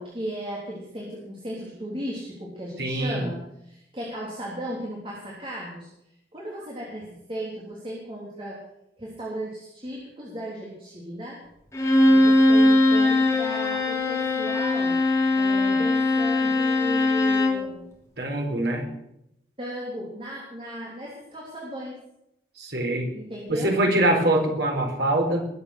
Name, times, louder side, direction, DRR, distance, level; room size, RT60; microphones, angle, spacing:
voice 1, 0.0-5.9 6.3-8.6 9.0-11.4 12.1-15.0 15.3-17.8 19.6-22.0 23.1-23.8, equal, 30° right, -4 dB, 3.5 m, -36 dB
voice 2, 2.8-3.3 18.2-18.9 22.6-23.1 23.5-25.5, right 1 dB, 75° right, 2 dB, 4.2 m, -24 dB
Bowed string instrument, 11.7-17.7, left 2 dB, 15° left, 3.1 m, -20 dB
20.5 x 8.6 x 6.5 m, 0.81 s
head